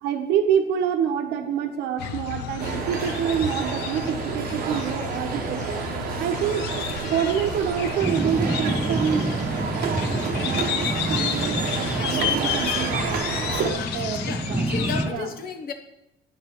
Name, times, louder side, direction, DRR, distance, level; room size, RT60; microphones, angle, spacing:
voice 1, 0.0-5.8 6.2-6.6 7.0-9.3 10.4-10.7 11.1-13.2 13.5-14.6 15.0-15.3, right 8 dB, 85° right, 6 dB, 0.9 m, -27 dB
sound 1, 2.0-15.1, left 9 dB, 85° left, 0.5 m, -32 dB
sound 2, 2.6-13.7, right 7 dB, 60° right, 0.8 m, -30 dB
sound 3, 8.0-15.1, right 1 dB, 10° right, 0.6 m, -29 dB
voice 2, 11.9-12.6 13.5-15.7, left 6 dB, 60° left, 7 dB, 1.0 m, -35 dB
8.8 x 5.0 x 4.3 m, 0.89 s
cardioid pair, 110°, 17 cm